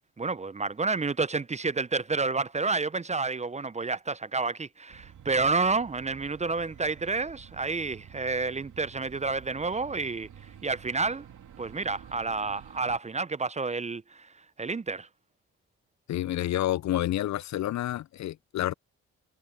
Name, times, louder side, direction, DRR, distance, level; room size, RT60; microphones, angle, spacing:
voice 1, 0.2-10.3 10.6-11.2 11.6-14.0 14.6-15.1, right 3 dB, 20° right, 0.6 m, -29 dB
sound 1, 4.9-13.0, right 9 dB, 65° right, 2.9 m, -50 dB
voice 2, 16.1-18.7, left 13 dB, 55° left, 0.5 m, -29 dB
hypercardioid pair, 45°, 33 cm